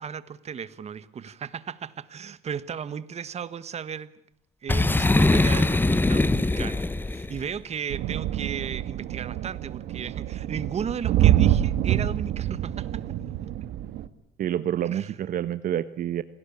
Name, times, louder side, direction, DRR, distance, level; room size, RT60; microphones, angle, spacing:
voice 1, 0.0-4.1 4.6-13.2 14.9-15.1, right 7 dB, 40° right, 15 dB, 1.4 m, -35 dB
Boom, 4.7-7.4, left 2 dB, 10° left, 0.9 m, -22 dB
sound 1, 7.9-14.1, right 12 dB, 75° right, 1.5 m, -26 dB
voice 2, 14.4-16.2, right 11 dB, 55° right, 13 dB, 1.1 m, -28 dB
27.0 x 18.0 x 8.7 m, 0.76 s
cardioid pair, 110°, 17 cm